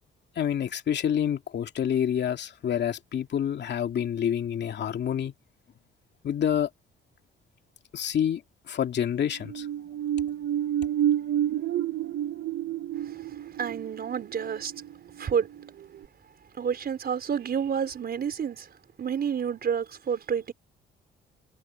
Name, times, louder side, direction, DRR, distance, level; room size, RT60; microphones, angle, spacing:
voice 1, 0.4-5.3 6.2-6.7 7.9-8.4 8.7-9.7, left 9 dB, 60° left, 2.6 m, -27 dB
sound 1, 9.3-15.7 16.0-16.1, right 11 dB, 70° right, 2.3 m, -30 dB
voice 2, 13.0-14.7 15.2-15.5 16.5-18.7 19.0-20.5, right 7 dB, 50° right, 4.8 m, -29 dB
cardioid pair, 90°, 20 cm